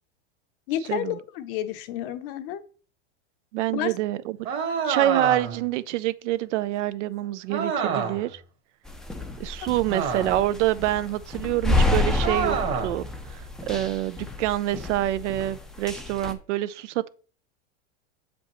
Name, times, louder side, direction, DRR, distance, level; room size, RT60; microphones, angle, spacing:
voice 1, 0.7-2.6 3.7-3.9, left 11 dB, 50° left, 0.7 m, -30 dB
voice 2, 3.5-4.4 4.8-8.4 9.4-12.6 12.8-17.1, right 14 dB, 85° right, 0.5 m, -26 dB
sound 1, 4.4-5.7 7.5-8.3 9.9-10.5 12.2-13.0, right 6 dB, 35° right, 1.4 m, -28 dB
sound 2, 8.8-16.3, left 2 dB, ahead, 0.4 m, -29 dB
6.9 x 5.2 x 2.9 m
supercardioid pair, 135°, 35 cm